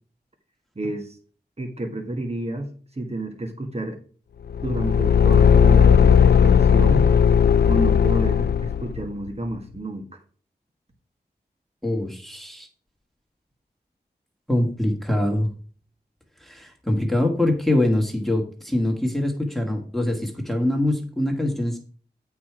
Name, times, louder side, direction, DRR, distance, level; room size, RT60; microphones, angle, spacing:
voice 1, 0.7-1.2 1.6-4.0 4.6-7.1 7.6-10.0, right 2 dB, 35° right, 3 dB, 1.6 m, -30 dB
Car / Engine, 4.5-9.1, left 7 dB, 70° left, 0.4 m, -16 dB
voice 2, 11.8-12.7 14.5-15.5 16.4-21.8, left 1 dB, ahead, 1 dB, 1.9 m, -24 dB
8.4 x 4.8 x 6.0 m, 0.42 s
wide cardioid pair, 60°, 18 cm